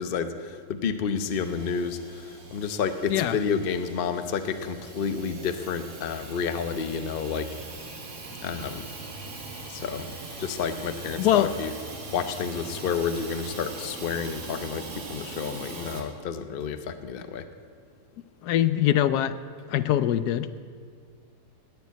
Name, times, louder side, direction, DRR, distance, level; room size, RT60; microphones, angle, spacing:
voice 1, 0.0-7.5 8.4-8.9 9.7-10.1 10.4-11.7 12.1-17.5, left 6 dB, 45° left, 9 dB, 0.8 m, -30 dB
Hiss / Toilet flush / Trickle dribble, 1.3-16.0, right 3 dB, 90° right, 2.3 m, -41 dB
voice 2, 11.2-11.6 18.4-19.4 19.7-20.6, left 12 dB, 80° left, 13 dB, 1.2 m, -23 dB
19.0 x 7.0 x 8.2 m, 2.1 s
omnidirectional pair, 1.7 m